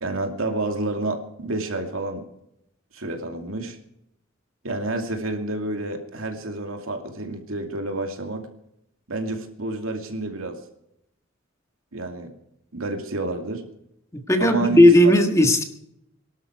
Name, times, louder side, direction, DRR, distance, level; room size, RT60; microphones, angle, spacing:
voice 1, 0.0-2.2 2.9-3.8 4.6-8.4 9.1-10.6 11.9-12.3 12.7-13.6 14.4-15.1, right 2 dB, 80° right, 4 dB, 2.5 m, -29 dB
voice 2, 14.3-15.6, left 1 dB, 15° left, 5 dB, 1.6 m, -15 dB
22.5 x 12.0 x 4.7 m, 0.79 s
head